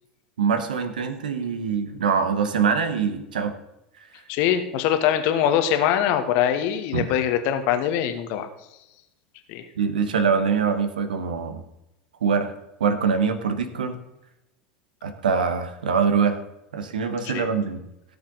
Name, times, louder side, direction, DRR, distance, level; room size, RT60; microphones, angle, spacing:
voice 1, 0.4-3.5 6.9-7.1 9.8-11.6 12.2-12.5 12.8-14.0 15.0-16.4 16.7-17.8, right 6 dB, 70° right, 9 dB, 1.3 m, -23 dB
voice 2, 4.3-8.5 9.5-9.7 17.2-17.5, left 10 dB, 50° left, 8 dB, 1.2 m, -23 dB
17.0 x 7.1 x 4.0 m, 0.90 s
figure-of-eight pair, 80°, 5 cm